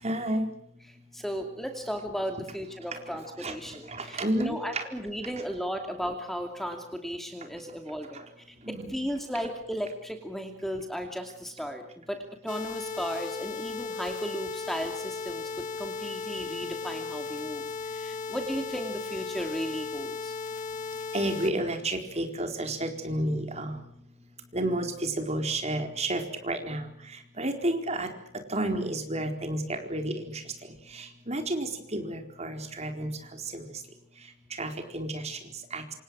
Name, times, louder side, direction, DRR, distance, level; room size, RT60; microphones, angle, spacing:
voice 1, 0.0-0.5 2.9-3.0 3.4-3.5 3.9-4.8 8.1-8.2 8.7-8.9 21.1-23.8 24.5-26.9 27.4-28.1 28.5-30.4 30.9-33.1 33.5-33.6 34.5-35.4 35.7-35.8, right 1 dB, 35° right, 5 dB, 4.3 m, -31 dB
voice 2, 1.1-8.2 8.5-20.3, equal, ahead, 4 dB, 2.5 m, -35 dB
sound 1, 12.5-21.5, left 4 dB, 40° left, 2.6 m, -36 dB
27.5 x 27.0 x 6.3 m, 0.70 s
head